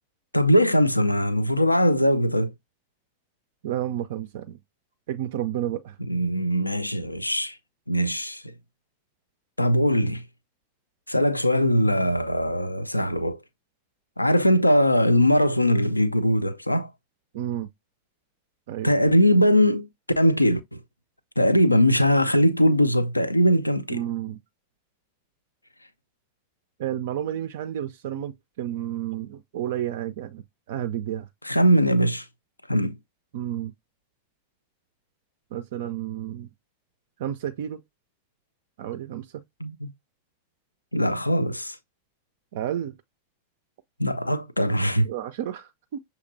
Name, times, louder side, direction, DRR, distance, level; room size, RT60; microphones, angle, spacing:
voice 1, 0.3-2.5 6.1-7.6 7.9-8.4 9.6-10.2 11.1-13.4 14.2-16.9 18.8-19.9 20.2-20.8 21.4-24.0 31.4-32.2 32.7-33.0 39.6-39.9 40.9-41.8 44.0-45.1, equal, 85° left, 0.4 m, -21 dB
voice 2, 3.6-4.6 5.1-6.0 17.3-17.7 18.7-18.9 23.9-24.4 26.8-31.3 33.3-33.7 35.5-36.5 37.2-37.8 38.8-39.4 42.5-43.0 45.0-46.0, right 11 dB, 55° right, 0.4 m, -31 dB
6.4 x 2.8 x 2.5 m
figure-of-eight pair, 90°, 0 cm